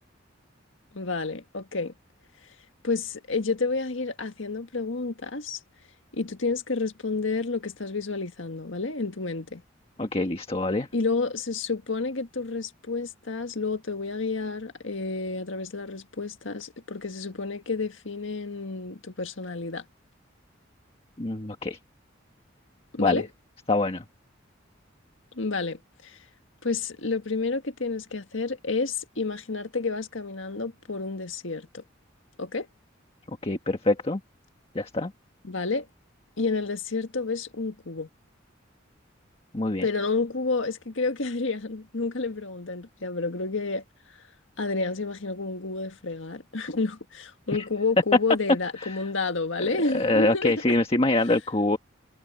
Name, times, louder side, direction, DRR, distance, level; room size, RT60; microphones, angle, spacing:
voice 1, 0.9-1.9 2.8-5.6 6.1-9.6 10.9-19.9 22.9-23.3 25.4-26.2 26.6-31.8 32.4-32.7 35.4-35.9 36.4-38.1 39.8-43.8 44.6-50.5, left 3 dB, 75° left, 1.7 m, -30 dB
voice 2, 10.0-10.9 21.2-21.8 23.0-23.3 23.7-24.0 33.4-34.2 34.7-35.1 39.5-39.8 47.5-47.6 49.9-51.8, left 2 dB, 30° left, 1.5 m, -25 dB
head